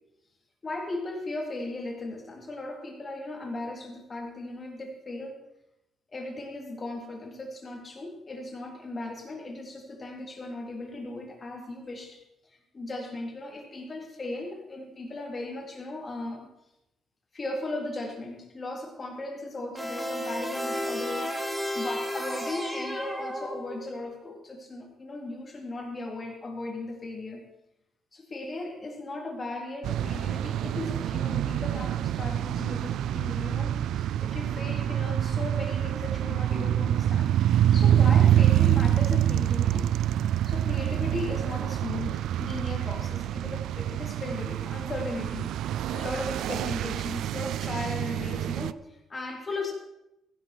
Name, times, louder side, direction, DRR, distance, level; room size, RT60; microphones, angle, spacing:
voice 1, 0.6-5.4 6.1-12.2 12.7-16.5 17.3-21.3 21.7-27.4 28.1-37.3 37.7-39.9 40.4-49.7, left 2 dB, 30° left, 1 dB, 3.6 m, -37 dB
sound 1, 19.8-24.1, equal, 5° right, 2.3 m, -33 dB
sound 2, 29.8-48.7, right 11 dB, 80° right, 0.4 m, -26 dB
15.5 x 10.5 x 4.6 m, 0.87 s
cardioid pair, 90°, 0 cm